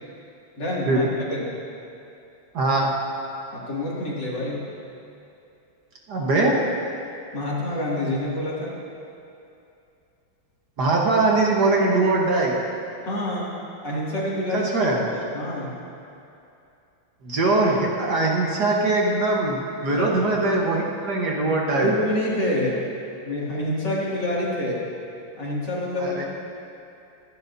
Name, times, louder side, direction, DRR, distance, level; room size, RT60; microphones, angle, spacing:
voice 1, 0.6-1.5 3.5-4.7 7.3-8.8 13.0-13.6 13.8-14.7 15.1-15.7 19.9-20.1 21.7-22.8 23.2-24.8 25.4-26.2, left 1 dB, 60° left, -6 dB, 3.0 m, -27 dB
voice 2, 2.5-2.9 6.1-6.6 10.8-12.6 14.5-15.0 17.2-21.9 26.0-26.2, right 2 dB, 55° right, -2 dB, 1.7 m, -21 dB
24.5 x 10.5 x 2.7 m, 2.7 s
omnidirectional pair, 2.2 m